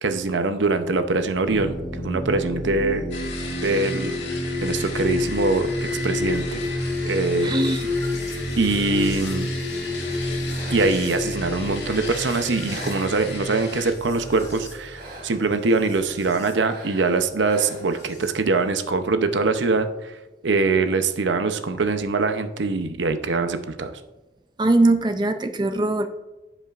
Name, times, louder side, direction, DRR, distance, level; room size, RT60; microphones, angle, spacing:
voice 1, 0.0-3.1 3.6-4.2 4.6-5.7 6.0-6.6 7.0-7.5 8.6-9.5 10.7-20.1 20.4-23.9, right 3 dB, 80° right, 8 dB, 0.7 m, -23 dB
sound 1, 1.5-16.5 17.7-18.3, left 1 dB, 20° left, 2.5 m, -30 dB
sound 2, 3.1-13.9, left 4 dB, 80° left, 1.8 m, -37 dB
voice 2, 7.4-7.8 24.6-26.1, right 2 dB, 25° right, 8 dB, 0.4 m, -20 dB
sound 3, 9.7-11.2 11.7-13.6 14.1-15.6 16.5-18.1, right 2 dB, 50° right, 1.9 m, -43 dB
15.0 x 5.5 x 2.5 m, 1.1 s
head